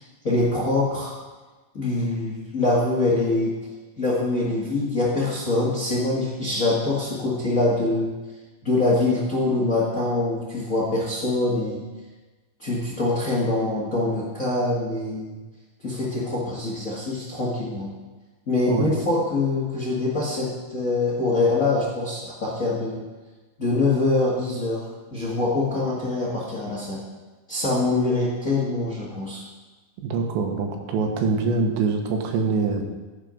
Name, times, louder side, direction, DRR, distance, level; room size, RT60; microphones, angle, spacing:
voice 1, 0.2-1.1 1.7-3.5 4.0-8.1 8.6-11.9 12.6-15.4 15.8-17.9 18.5-23.0 23.6-24.8 25.1-27.0 27.5-29.4, left 2 dB, 85° left, -5 dB, 0.7 m, -24 dB
voice 2, 30.0-32.8, right 4 dB, 85° right, 3 dB, 3.6 m, -24 dB
15.5 x 7.3 x 5.2 m, 1.3 s
omnidirectional pair, 5.1 m